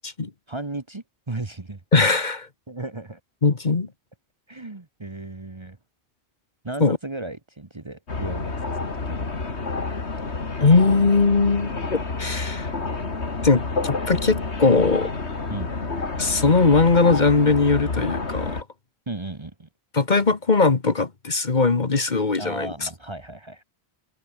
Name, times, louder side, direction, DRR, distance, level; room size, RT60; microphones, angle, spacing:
voice 1, 0.5-1.8 2.7-3.2 4.5-5.8 6.6-9.3 15.5-15.7 19.1-19.7 22.4-23.6, right 2 dB, 25° right, 1.2 m, -35 dB
voice 2, 1.9-2.5 3.4-3.9 6.8-7.0 10.6-12.7 13.4-15.1 16.2-18.6 19.9-22.9, left 4 dB, 45° left, 1.5 m, -20 dB
sound 1, 8.1-18.6, left 3 dB, 85° left, 2.9 m, -29 dB
omnidirectional pair, 1.1 m